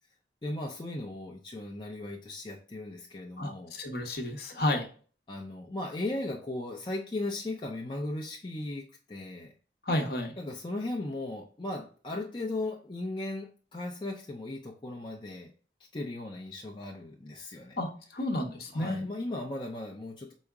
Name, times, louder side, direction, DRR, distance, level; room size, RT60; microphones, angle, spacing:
voice 1, 0.4-3.8 5.3-9.5 10.4-15.5 15.9-17.8 18.7-20.3, left 2 dB, 25° left, -1 dB, 0.5 m, -37 dB
voice 2, 3.4-4.9 9.9-10.3 17.8-19.1, left 1 dB, 55° left, 3 dB, 0.8 m, -31 dB
4.6 x 2.1 x 3.4 m, 0.41 s
head